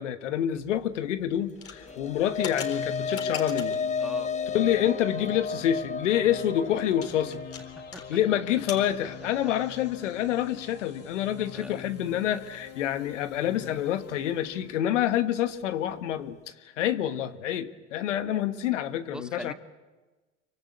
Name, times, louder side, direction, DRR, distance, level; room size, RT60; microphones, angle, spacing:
voice 1, 0.0-3.8 4.5-7.4 8.1-16.4 16.8-19.5, left 11 dB, 80° left, 11 dB, 1.4 m, -27 dB
sound 1, 1.5-3.9 4.5-4.9 5.2-5.3 5.6-5.7 6.1-8.1 8.3-8.9, left 6 dB, 40° left, 3.9 m, -41 dB
sound 2, 1.6-10.2, left 5 dB, 20° left, 1.0 m, -34 dB
sound 3, 2.2-14.8, left 9 dB, 65° left, 7.6 m, -45 dB
voice 2, 4.0-4.3 7.9-8.2 11.5-11.7 12.3-12.4 19.1-19.5, equal, ahead, 9 dB, 1.4 m, -41 dB
26.0 x 24.0 x 8.5 m, 1.2 s
hypercardioid pair, 85°, 36 cm